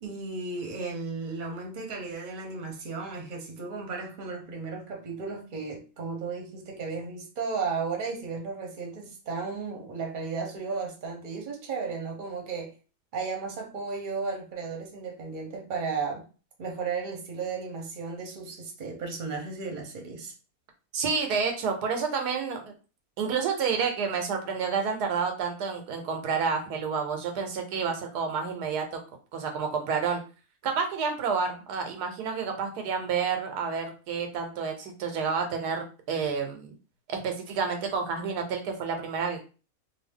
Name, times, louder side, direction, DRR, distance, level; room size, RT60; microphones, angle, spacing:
voice 1, 0.0-12.7 13.1-16.2 16.6-20.3, right 4 dB, 40° right, 0.9 m, -34 dB
voice 2, 20.9-22.7 23.2-29.0 29.3-30.2 30.6-36.7 37.1-39.4, right 5 dB, 90° right, 1.3 m, -29 dB
2.7 x 2.6 x 3.4 m
omnidirectional pair, 1.7 m